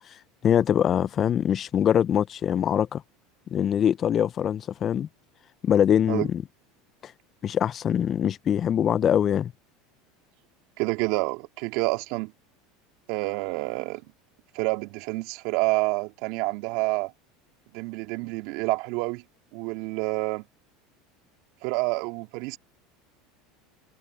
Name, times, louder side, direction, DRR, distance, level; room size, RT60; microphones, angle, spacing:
voice 1, 0.4-3.0 3.5-5.1 5.6-6.4 7.0-7.1 7.4-9.5, left 9 dB, 40° left, 0.6 m, -23 dB
voice 2, 10.8-12.3 13.1-14.0 14.5-17.1 17.7-19.2 19.5-20.4 21.6-22.6, right 25 dB, 65° right, 2.8 m, -28 dB
hypercardioid pair, 90°, 0 cm